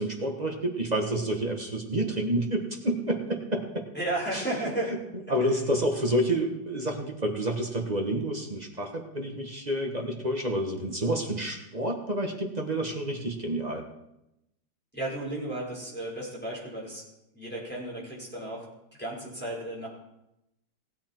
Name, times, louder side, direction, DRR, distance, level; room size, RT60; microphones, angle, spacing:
voice 1, 0.0-3.9 4.3-4.4 5.3-13.8, right 1 dB, 25° right, 2 dB, 1.4 m, -29 dB
voice 2, 3.9-5.0 14.9-17.0 17.3-18.6 19.0-19.9, right 1 dB, 5° left, -6 dB, 5.0 m, -33 dB
18.5 x 8.6 x 4.5 m, 0.88 s
omnidirectional pair, 1.8 m